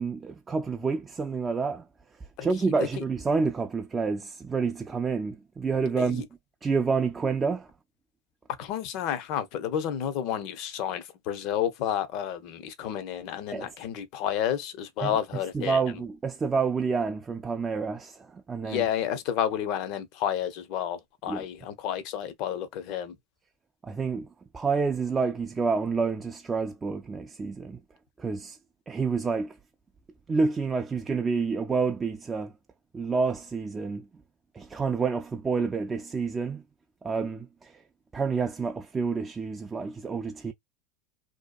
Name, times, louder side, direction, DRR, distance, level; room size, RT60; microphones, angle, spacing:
voice 1, 0.0-1.8 2.4-6.3 6.6-7.7 13.5-13.8 15.0-18.9 21.3-21.5 23.8-24.3 24.5-27.8 28.2-28.6 28.9-29.6 30.3-32.5 32.9-34.0 34.5-36.6 37.0-37.8 38.1-40.5, right 4 dB, 25° right, 0.3 m, -28 dB
voice 2, 2.4-2.9 8.6-15.8 18.6-23.1, left 10 dB, 60° left, 0.6 m, -31 dB
2.7 x 2.2 x 2.2 m
hypercardioid pair, 90°, 0 cm